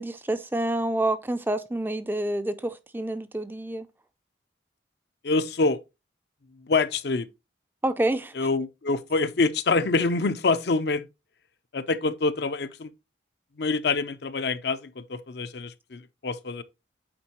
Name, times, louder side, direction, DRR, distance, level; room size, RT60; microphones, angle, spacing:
voice 1, 0.0-3.9 7.8-8.3, right 1 dB, 10° right, 0.4 m, -28 dB
voice 2, 5.2-5.8 6.5-7.3 8.3-11.1 11.7-12.9 13.6-16.6, left 3 dB, 60° left, 0.6 m, -26 dB
8.6 x 4.4 x 3.0 m
head